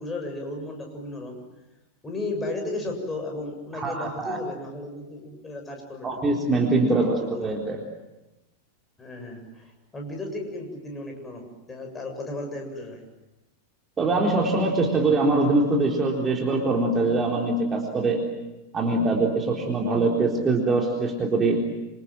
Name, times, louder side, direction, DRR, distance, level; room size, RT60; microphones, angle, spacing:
voice 1, 0.0-1.4 2.0-6.2 6.9-7.4 9.0-13.0, left 2 dB, 15° left, 2 dB, 7.4 m, -34 dB
voice 2, 3.7-4.4 6.0-7.8 14.0-18.2 18.7-21.6, right 2 dB, 20° right, 0 dB, 3.8 m, -23 dB
27.0 x 27.0 x 7.7 m, 0.99 s
figure-of-eight pair, 90°, 0 cm